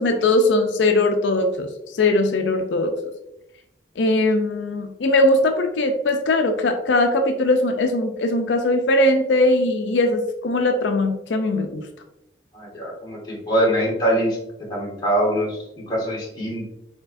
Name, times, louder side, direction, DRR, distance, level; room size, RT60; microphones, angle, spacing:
voice 1, 0.0-1.7 1.9-2.9 4.0-11.8, left 2 dB, 90° left, 5 dB, 0.5 m, -20 dB
voice 2, 12.5-14.4 14.7-16.7, right 1 dB, 25° left, -5 dB, 1.5 m, -23 dB
4.4 x 4.2 x 2.5 m, 0.86 s
head